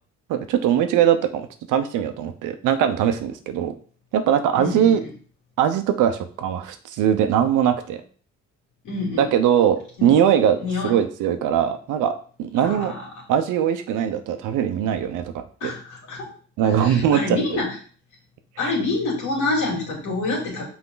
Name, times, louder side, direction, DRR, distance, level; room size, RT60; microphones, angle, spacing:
voice 1, 0.3-3.8 4.1-5.0 5.6-8.0 9.2-10.6 10.8-12.1 12.4-12.9 13.3-15.7 16.6-17.6, right 9 dB, 90° right, 8 dB, 0.8 m, -21 dB
voice 2, 4.6-5.1 8.8-9.3 10.0-10.1 10.6-10.9 12.6-13.1 15.6-16.3 16.6-17.7 18.6-20.6, left 3 dB, 80° left, -3 dB, 3.0 m, -27 dB
6.1 x 4.3 x 3.9 m, 0.43 s
cardioid pair, 90°, 30 cm